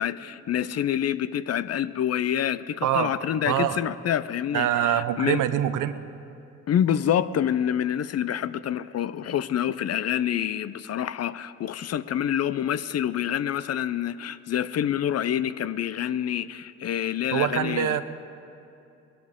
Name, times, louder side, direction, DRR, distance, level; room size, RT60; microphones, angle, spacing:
voice 1, 0.0-5.4 6.7-18.0, left 10 dB, 50° left, 15 dB, 0.5 m, -27 dB
voice 2, 3.5-3.8 4.5-5.9 17.3-18.0, right 11 dB, 75° right, 12 dB, 0.7 m, -24 dB
20.0 x 12.5 x 3.7 m, 2.7 s
supercardioid pair, 60°, 32 cm